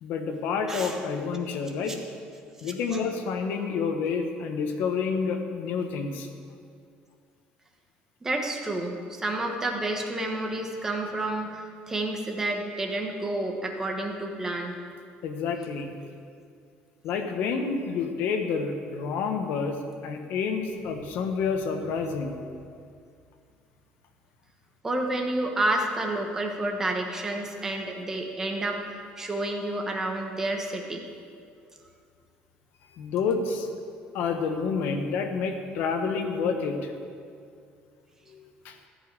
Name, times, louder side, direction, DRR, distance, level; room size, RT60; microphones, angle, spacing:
voice 1, 0.0-2.0 2.6-6.3 15.2-15.9 17.0-22.4 32.9-33.7 34.1-36.9 38.3-38.8, left 5 dB, 60° left, 5 dB, 1.3 m, -29 dB
voice 2, 2.6-3.0 8.2-14.8 24.8-28.8 29.2-31.0, right 2 dB, 15° right, 2 dB, 1.2 m, -30 dB
14.5 x 5.6 x 9.0 m, 2.3 s
cardioid pair, 175°, 4 cm